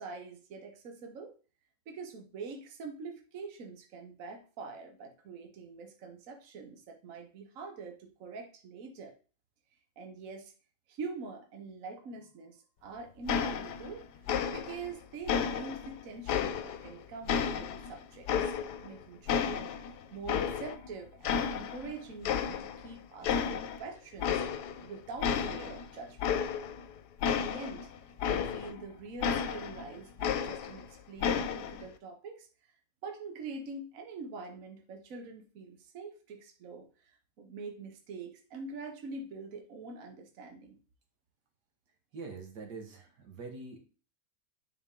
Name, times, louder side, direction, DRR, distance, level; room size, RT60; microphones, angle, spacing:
voice 1, 0.0-1.4 1.9-9.1 10.0-10.5 10.9-14.1 14.5-18.6 18.8-24.4 24.8-26.4 27.2-27.9 28.2-32.5 33.0-36.9 37.4-40.8, right 4 dB, 60° right, 3 dB, 1.3 m, -44 dB
sound 1, 13.3-14.0 14.3-14.9 15.3-16.9 17.3-18.9 19.3-20.9 21.2-21.9 22.2-22.9 23.2-23.8 24.2-24.9 25.2-28.8 29.2-30.9 31.2-31.8, left 7 dB, 90° left, 1.3 m, -32 dB
voice 2, 42.1-43.9, right 4 dB, 80° right, 2 dB, 2.1 m, -44 dB
9.4 x 4.7 x 3.7 m, 0.37 s
omnidirectional pair, 1.7 m